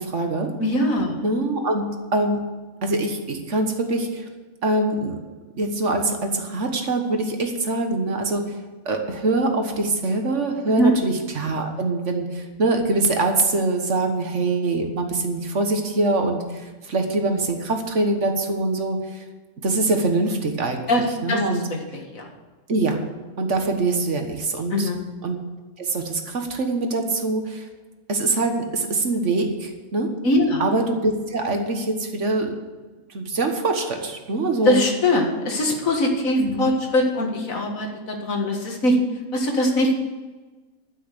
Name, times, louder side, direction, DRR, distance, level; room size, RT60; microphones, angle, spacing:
voice 1, 0.0-0.5 1.2-1.8 2.1-2.4 2.8-4.2 4.6-5.1 5.5-8.4 8.8-19.2 19.6-20.9 21.2-21.6 22.7-23.1 23.4-24.9 25.2-25.4 25.8-27.7 28.1-30.1 30.6-32.6 33.1-34.8 36.4-36.7, right 2 dB, 60° right, 4 dB, 1.6 m, -24 dB
voice 2, 0.6-1.1 10.7-11.0 20.9-21.4 21.7-22.2 24.7-25.0 30.2-30.6 34.7-39.0 39.3-39.9, left 1 dB, 70° left, 2 dB, 2.1 m, -22 dB
12.0 x 6.2 x 8.2 m, 1.3 s
omnidirectional pair, 1.5 m